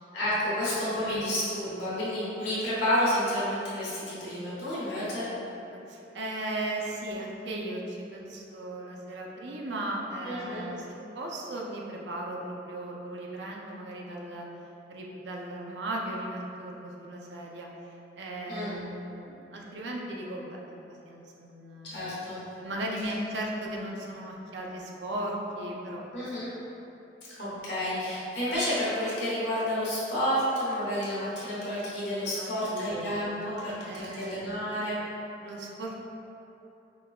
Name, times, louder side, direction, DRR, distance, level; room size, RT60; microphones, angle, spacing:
voice 1, 0.1-5.3 10.2-10.6 18.5-18.8 21.9-22.4 26.1-26.5 27.4-35.0, equal, 65° left, -9 dB, 1.1 m, -30 dB
voice 2, 5.9-10.9 11.1-14.5 14.9-22.1 22.6-26.0 27.5-27.6 32.3-34.7 35.4-36.0, right 1 dB, 70° right, -2 dB, 0.5 m, -37 dB
5.1 x 2.2 x 2.3 m, 2.9 s
head